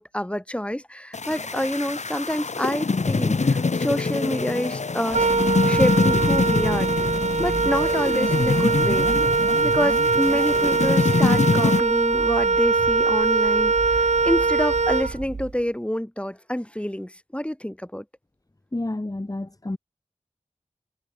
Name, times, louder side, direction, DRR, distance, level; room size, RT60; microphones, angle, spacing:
voice 1, 0.0-5.3 5.6-6.9 7.4-9.1 9.6-18.0, equal, 10° left, 4.8 m, -27 dB
sound 1, 1.1-11.8, left 4 dB, 75° left, 1.2 m, -24 dB
Wind instrument woodwind instrument, 5.1-15.5, right 4 dB, 75° right, 1.2 m, -22 dB
voice 2, 18.7-19.8, left 2 dB, 30° left, 1.5 m, -29 dB
wide cardioid pair, 45°, 12 cm